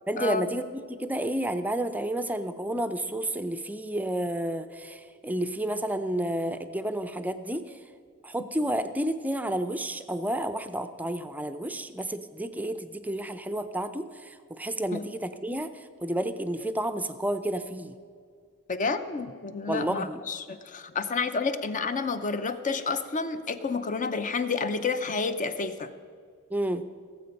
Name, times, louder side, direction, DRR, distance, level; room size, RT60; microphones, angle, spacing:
voice 1, 0.1-7.7 8.2-17.9 19.7-20.2 26.5-26.8, right 1 dB, 5° right, 10 dB, 0.5 m, -31 dB
voice 2, 18.7-25.9, left 4 dB, 35° left, 11 dB, 0.6 m, -30 dB
17.5 x 7.7 x 5.3 m, 2.1 s
head